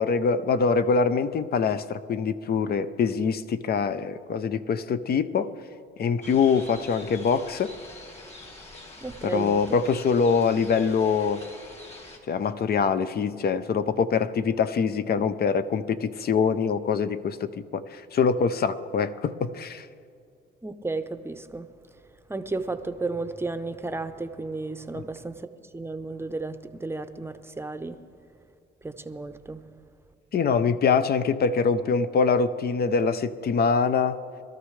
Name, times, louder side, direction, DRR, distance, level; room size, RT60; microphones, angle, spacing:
voice 1, 0.0-5.5 6.0-7.8 9.2-11.4 12.3-19.9 24.9-25.0 30.3-34.2, left 5 dB, 50° left, 12 dB, 0.6 m, -24 dB
sound 1, 6.2-12.2, left 2 dB, 30° left, 2.5 m, -45 dB
voice 2, 9.0-9.6 20.6-21.7 22.3-25.5 25.7-28.0 28.8-29.6, right 3 dB, 10° right, 10 dB, 0.7 m, -33 dB
22.0 x 13.0 x 3.2 m, 2.3 s
cardioid pair, 90°, 20 cm